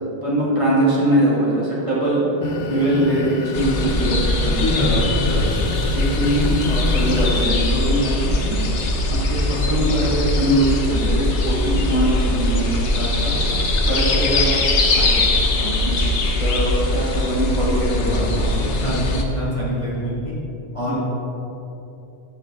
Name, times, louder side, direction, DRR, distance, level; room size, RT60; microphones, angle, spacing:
voice 1, 0.2-2.3 2.6-4.6 5.9-8.6 9.1-13.4 13.9-14.5 14.7-15.2 15.5-16.1 16.4-18.9 20.8-21.0, right 1 dB, 30° right, -8 dB, 2.4 m, -22 dB
sound 1, 2.4-7.5, left 2 dB, 55° left, 0.7 m, -29 dB
sound 2, 3.5-19.2, left 2 dB, 85° left, 1.2 m, -21 dB
voice 2, 4.4-5.5 18.0-18.3 18.6-20.3 20.7-21.0, equal, 30° left, -8 dB, 2.3 m, -25 dB
13.0 x 6.8 x 3.7 m, 2.9 s
omnidirectional pair, 1.1 m